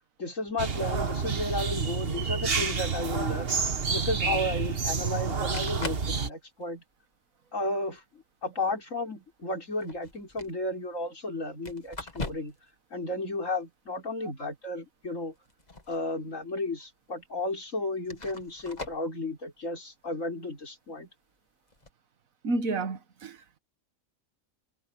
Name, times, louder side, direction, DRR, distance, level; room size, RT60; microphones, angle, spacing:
voice 1, 0.2-3.5 3.9-6.8 7.5-12.5 12.9-15.3 15.9-21.1, left 2 dB, 70° left, 4.9 m, -33 dB
sound 1, 0.6-6.3, right 5 dB, 45° right, 1.6 m, -29 dB
sound 2, 5.5-6.1 6.6-6.9 7.9-8.0 9.7-10.5 11.6-12.7 13.0-13.1 15.3-16.1 16.4-16.5 17.3-17.4 18.0-19.1 21.7-21.9, left 3 dB, 30° left, 2.0 m, -40 dB
voice 2, 22.4-23.6, right 2 dB, 80° right, 1.7 m, -31 dB
omnidirectional pair, 1.4 m